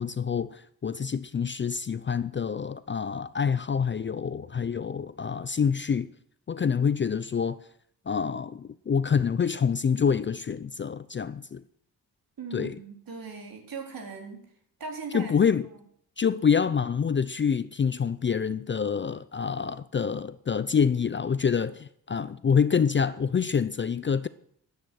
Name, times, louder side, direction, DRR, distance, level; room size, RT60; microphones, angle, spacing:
voice 1, 0.0-6.1 6.5-7.6 8.1-11.6 12.5-12.7 15.1-15.6 16.2-24.3, left 6 dB, 30° left, 0.5 m, -26 dB
voice 2, 12.4-14.4 14.8-15.4 15.7-15.8, right 4 dB, 60° right, 4.1 m, -39 dB
10.5 x 8.9 x 9.3 m
cardioid pair, 90°, 38 cm